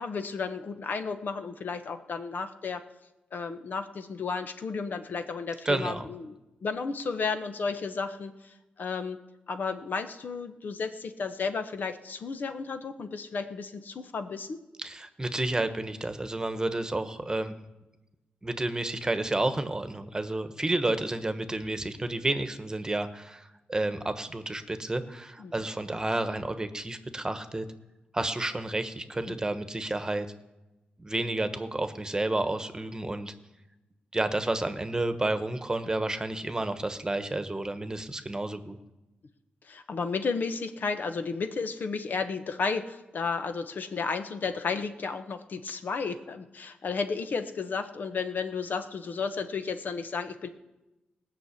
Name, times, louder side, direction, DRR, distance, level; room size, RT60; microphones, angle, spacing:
voice 1, 0.0-2.8 3.3-6.3 6.6-9.2 9.5-14.6 25.4-25.5 29.3-29.4 39.6-50.5, left 5 dB, 65° left, 8 dB, 1.2 m, -33 dB
voice 2, 5.6-6.0 14.8-17.6 18.4-27.6 28.1-30.3 31.0-33.3 34.1-38.8, right 2 dB, 20° right, 9 dB, 1.3 m, -30 dB
18.5 x 6.2 x 8.4 m, 1.0 s
cardioid pair, 65°, 3 cm